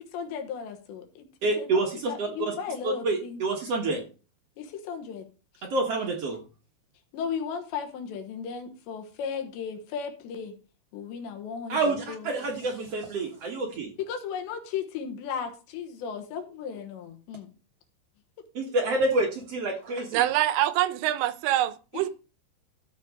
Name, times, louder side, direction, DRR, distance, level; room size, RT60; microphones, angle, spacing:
voice 1, 0.1-1.3 1.6-3.4 4.6-5.3 5.6-5.7 7.1-10.5 10.9-12.3 14.1-17.5 21.9-22.1, left 7 dB, 80° left, 3.5 m, -35 dB
voice 2, 1.4-2.5 2.8-4.0 5.6-6.4 11.7-13.9 18.5-20.2, right 2 dB, 70° right, 1.4 m, -28 dB
voice 3, 20.1-22.1, right 14 dB, 90° right, 3.0 m, -25 dB
13.5 x 5.3 x 5.2 m
omnidirectional pair, 5.1 m